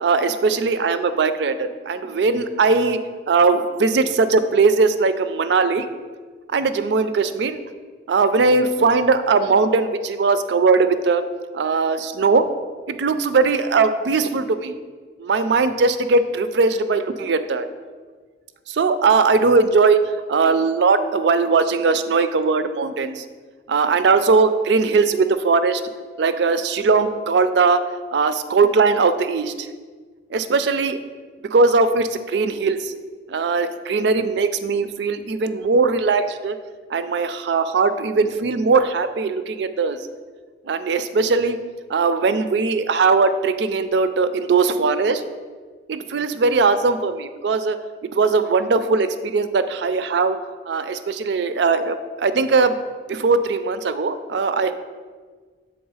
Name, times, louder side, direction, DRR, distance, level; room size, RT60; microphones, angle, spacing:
voice 1, 0.0-3.0 3.3-5.9 6.5-7.6 8.1-11.2 11.5-12.5 12.9-14.8 15.2-17.7 18.7-20.0 20.3-23.3 23.7-25.8 26.2-27.8 28.1-29.7 30.3-31.0 31.5-32.9 33.3-36.6 36.9-40.0 40.6-41.6 41.9-45.2 45.9-47.8 48.1-50.4 50.7-52.8 53.1-54.7, right 4 dB, 65° right, 11 dB, 0.4 m, -19 dB
7.1 x 3.6 x 4.7 m, 1.5 s
head